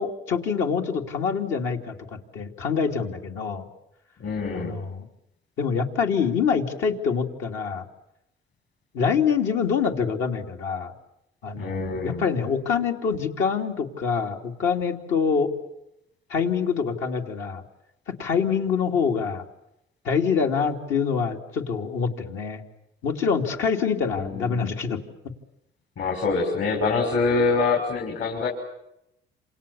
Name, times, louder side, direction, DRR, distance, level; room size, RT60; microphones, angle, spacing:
voice 1, 0.0-3.7 4.5-5.1 5.6-7.9 8.9-10.9 11.4-15.5 16.3-17.6 18.1-19.4 20.0-22.6 23.0-25.0, left 6 dB, 85° left, 1 dB, 3.2 m, -25 dB
voice 2, 4.2-4.7 11.6-12.2 24.1-24.6 26.0-28.5, left 4 dB, 70° left, 0 dB, 6.2 m, -25 dB
28.0 x 27.5 x 7.3 m, 0.83 s
cardioid pair, 90°, 20 cm